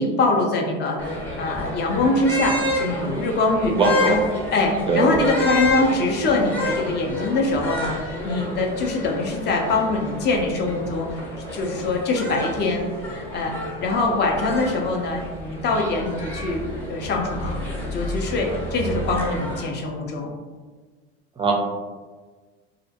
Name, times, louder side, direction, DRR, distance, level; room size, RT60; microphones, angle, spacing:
voice 1, 0.0-3.8 4.1-4.2 4.5-11.2 11.5-16.6 16.9-20.3, left 2 dB, 35° left, 1 dB, 0.5 m, -23 dB
sound 1, 1.0-19.6, left 1 dB, 5° left, 0.8 m, -30 dB
voice 2, 3.6-4.2 4.9-5.1 21.4-21.5, right 3 dB, 15° right, 0 dB, 0.4 m, -20 dB
2.4 x 2.1 x 2.7 m, 1.4 s
hypercardioid pair, 95°, 30 cm